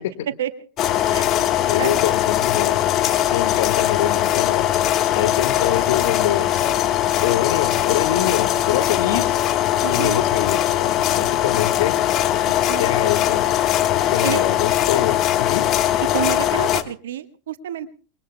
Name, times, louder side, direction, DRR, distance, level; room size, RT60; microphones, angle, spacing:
sound 1, 0.8-16.8, left 12 dB, 40° left, 1.3 m, -20 dB
voice 1, 1.1-2.0 9.8-10.3 12.7-12.8 14.2-14.4 16.1-17.9, right 11 dB, 70° right, 11 dB, 1.2 m, -29 dB
voice 2, 1.7-2.8 3.3-4.6 5.1-6.5 7.2-9.4 9.9-12.0 12.8-13.4 14.1-15.6, left 12 dB, 65° left, 8 dB, 1.7 m, -25 dB
28.5 x 21.5 x 2.2 m, 0.39 s
figure-of-eight pair, 85°, 0 cm